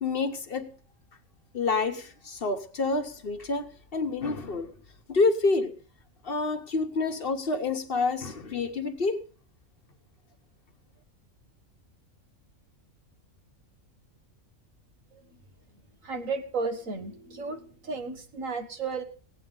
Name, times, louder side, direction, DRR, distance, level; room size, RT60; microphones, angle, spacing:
voice 1, 0.0-0.7 1.5-4.7 5.1-5.7 6.2-9.2, left 3 dB, 45° left, 1.2 m, -28 dB
voice 2, 16.0-19.0, right 4 dB, 75° right, 1.9 m, -33 dB
17.0 x 9.1 x 5.3 m
omnidirectional pair, 1.4 m